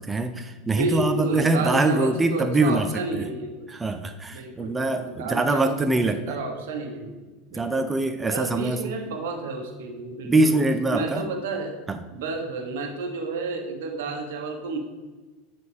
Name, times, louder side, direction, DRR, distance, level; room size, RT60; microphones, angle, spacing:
voice 1, 0.0-2.9 3.1-3.3 3.7-6.3 7.5-8.9 10.3-11.2 11.9-12.0, right 2 dB, 15° right, 7 dB, 0.5 m, -23 dB
voice 2, 0.7-3.5 4.3-7.9 8.3-10.6 10.9-11.8 12.1-14.8, right 3 dB, 80° right, 3 dB, 1.3 m, -31 dB
9.4 x 4.1 x 3.5 m, 1.2 s
supercardioid pair, 110°, 0 cm